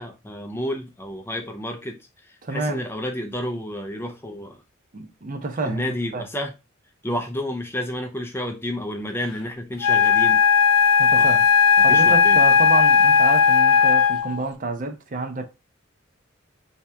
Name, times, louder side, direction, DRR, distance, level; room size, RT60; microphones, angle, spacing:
voice 1, 0.0-4.6 5.6-6.5 7.0-10.4 11.1-11.4 11.9-12.4, left 1 dB, 10° left, 0.4 m, -31 dB
voice 2, 2.4-2.8 4.9-5.9 6.1-6.2 11.0-11.4 11.8-15.5, right 3 dB, 40° right, 0.5 m, -28 dB
Wind instrument woodwind instrument, 9.8-14.4, left 6 dB, 75° left, 0.5 m, -16 dB
3.3 x 2.8 x 3.3 m
head